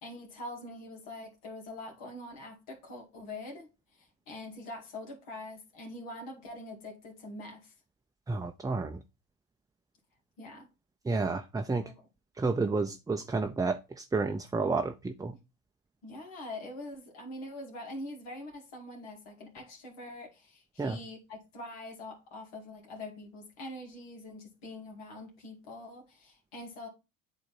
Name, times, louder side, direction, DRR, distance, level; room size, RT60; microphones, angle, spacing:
voice 1, 0.0-7.7 10.4-10.7 11.8-12.1 16.0-26.9, left 1 dB, 75° left, 2.4 m, -44 dB
voice 2, 8.3-9.0 11.1-11.8 12.4-15.3 20.8-21.0, right 3 dB, 10° right, 0.5 m, -30 dB
8.5 x 3.3 x 4.0 m
hypercardioid pair, 70°, 39 cm